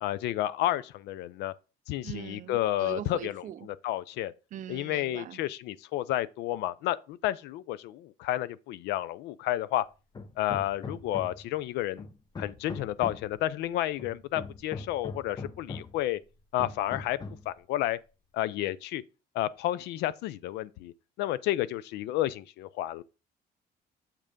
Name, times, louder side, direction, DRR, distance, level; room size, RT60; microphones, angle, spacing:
voice 1, 0.0-1.5 1.9-3.4 3.8-4.3 4.7-9.8 10.4-12.1 12.4-16.2 16.5-17.2 17.5-18.0 18.3-19.0 19.3-20.9 21.2-23.0, left 14 dB, 85° left, 0.4 m, -31 dB
voice 2, 2.0-3.7 4.5-5.4, right 11 dB, 50° right, 0.4 m, -41 dB
Hammer, 10.1-11.5 12.0-13.4 14.0-16.0 16.6-17.5, left 3 dB, 25° left, 0.7 m, -41 dB
7.4 x 3.3 x 5.1 m
cardioid pair, 110°, 17 cm